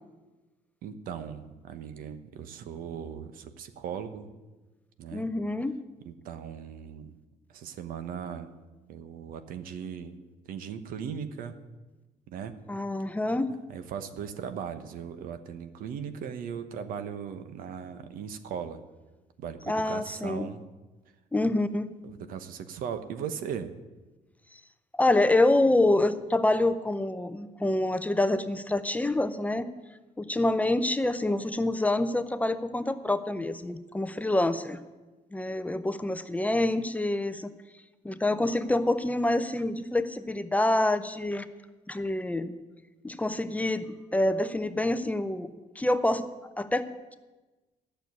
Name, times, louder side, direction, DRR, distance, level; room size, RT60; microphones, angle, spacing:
voice 1, 0.8-4.3 5.0-5.3 6.1-7.2 7.5-8.5 8.9-10.2 10.5-11.5 12.3-12.6 13.7-18.8 19.4-20.6 22.0-23.7, right 7 dB, 80° right, 10 dB, 1.0 m, -38 dB
voice 2, 5.1-5.7 12.7-13.5 19.7-20.5 21.3-21.9 24.9-29.7 30.2-34.8 35.3-37.5 38.0-41.5 41.9-42.5 43.0-43.9 44.1-45.5 45.8-46.2 46.6-47.1, left 2 dB, 10° left, 11 dB, 0.6 m, -26 dB
12.0 x 6.8 x 9.4 m, 1.2 s
cardioid pair, 130°, 14 cm